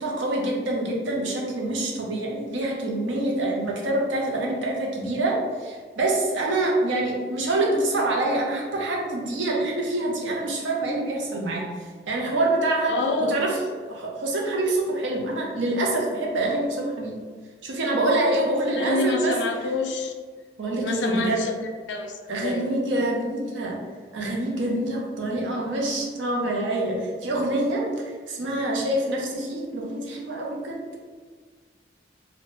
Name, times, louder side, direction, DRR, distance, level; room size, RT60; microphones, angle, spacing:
voice 1, 0.0-12.9 13.2-13.6 13.9-17.2 17.6-19.3 20.6-21.4 22.3-23.8 24.1-31.0, right 2 dB, 90° right, -1 dB, 0.6 m, -26 dB
voice 2, 12.9-13.4 18.3-18.4 18.7-20.1 20.8-21.5 21.9-22.7, left 3 dB, 75° left, 3 dB, 0.4 m, -27 dB
2.6 x 2.1 x 3.0 m, 1.5 s
head